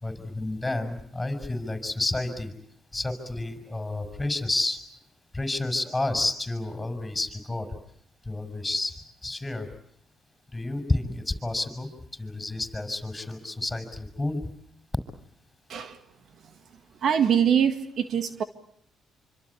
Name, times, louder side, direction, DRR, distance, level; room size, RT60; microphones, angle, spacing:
voice 1, 0.0-2.5 2.9-4.8 5.3-7.7 8.3-8.9 9.2-9.7 10.5-14.4, left 2 dB, 15° left, 8 dB, 6.1 m, -30 dB
voice 2, 17.0-18.4, right 8 dB, 60° right, 10 dB, 1.8 m, -23 dB
26.5 x 25.0 x 8.5 m, 0.69 s
supercardioid pair, 60°, 0 cm